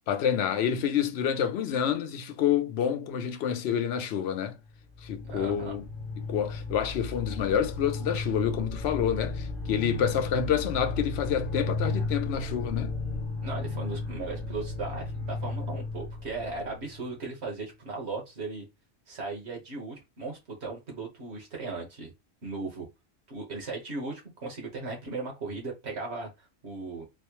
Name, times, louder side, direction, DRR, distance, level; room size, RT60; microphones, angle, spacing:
voice 1, 0.1-4.6 5.0-5.8 6.3-12.9 16.4-16.5, left 8 dB, 65° left, 0.8 m, -28 dB
sound 1, 4.7-17.5, left 3 dB, 50° left, 1.1 m, -34 dB
voice 2, 5.3-5.7 13.4-18.6 19.1-22.1 22.4-22.9 23.3-27.1, right 3 dB, 60° right, 1.6 m, -37 dB
4.1 x 2.2 x 3.0 m
omnidirectional pair, 1.3 m